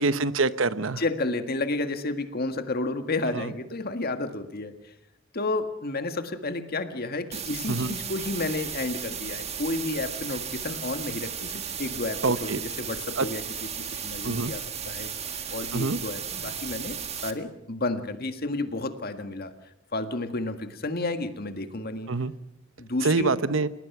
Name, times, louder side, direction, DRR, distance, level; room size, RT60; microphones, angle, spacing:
voice 1, 0.0-1.0 3.3-3.4 7.7-7.9 12.2-12.6 13.2-13.3 14.2-14.5 15.7-16.0 22.1-22.3 23.0-23.7, right 3 dB, 75° right, 14 dB, 1.0 m, -25 dB
voice 2, 1.0-4.9 5.3-13.4 13.8-15.1 15.5-17.0 17.2-19.5 19.9-22.1 22.8-23.4, left 2 dB, 50° left, 8 dB, 1.8 m, -31 dB
sound 1, 7.3-17.3, right 7 dB, 30° right, 1.8 m, -35 dB
29.5 x 19.0 x 6.0 m, 0.85 s
head